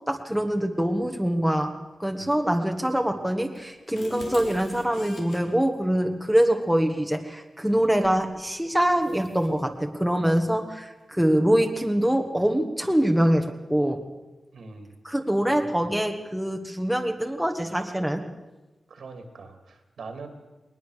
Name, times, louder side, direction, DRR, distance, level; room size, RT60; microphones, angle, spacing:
voice 1, 0.1-1.7 2.0-14.0 15.0-18.2, right 1 dB, ahead, 4 dB, 1.6 m, -24 dB
sound 1, 3.6-5.4 8.0-8.3 8.8-9.6, left 2 dB, 80° left, 3.5 m, -42 dB
voice 2, 14.5-14.9 15.5-15.9 18.9-20.3, right 4 dB, 80° right, 6 dB, 2.8 m, -43 dB
20.0 x 20.0 x 6.7 m, 1.1 s
wide cardioid pair, 130°, 0 cm